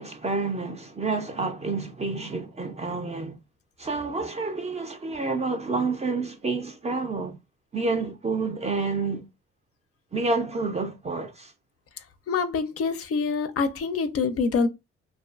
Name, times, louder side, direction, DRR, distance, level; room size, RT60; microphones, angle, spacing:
voice 1, 0.0-3.4 3.8-7.4 7.7-9.3 10.1-11.5, right 3 dB, 20° right, 0.4 m, -29 dB
voice 2, 12.3-14.7, left 5 dB, 50° left, 0.4 m, -25 dB
2.5 x 2.3 x 2.3 m
cardioid pair, 90°, 30 cm